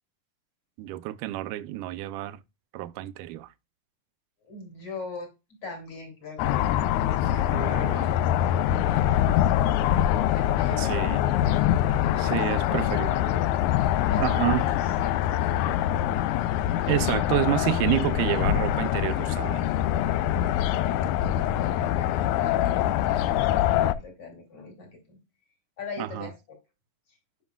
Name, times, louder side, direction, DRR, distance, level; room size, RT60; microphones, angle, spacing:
voice 1, 0.8-2.4 2.7-3.5 7.5-8.1 10.8-11.3 12.2-13.1 14.2-14.7 16.9-19.6 26.0-26.3, right 15 dB, 85° right, 2.1 m, -29 dB
voice 2, 4.4-5.3 5.6-11.6 12.0-13.6 14.0-15.9 20.9-23.3 23.7-24.9 25.8-26.3, left 3 dB, 45° left, 3.7 m, -42 dB
sound 1, 6.4-23.9, left 12 dB, 80° left, 1.9 m, -24 dB
9.3 x 6.2 x 2.4 m
omnidirectional pair, 3.6 m